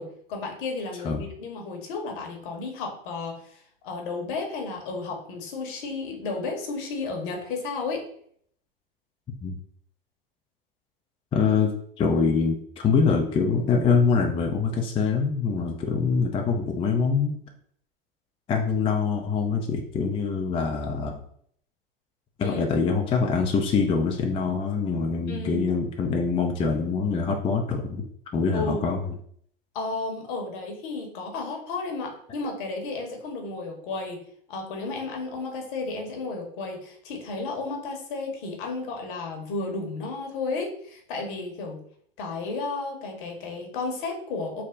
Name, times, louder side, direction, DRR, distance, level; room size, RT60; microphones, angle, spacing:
voice 1, 0.0-8.0 22.4-22.6 25.3-25.6 28.5-28.8 29.7-34.2 34.5-41.8 42.2-44.6, left 3 dB, 60° left, 2 dB, 1.1 m, -33 dB
voice 2, 11.3-17.4 18.5-21.1 22.4-28.1 28.3-29.1, left 5 dB, 20° left, 2 dB, 0.4 m, -24 dB
3.4 x 2.1 x 3.8 m, 0.64 s
hypercardioid pair, 85°, 29 cm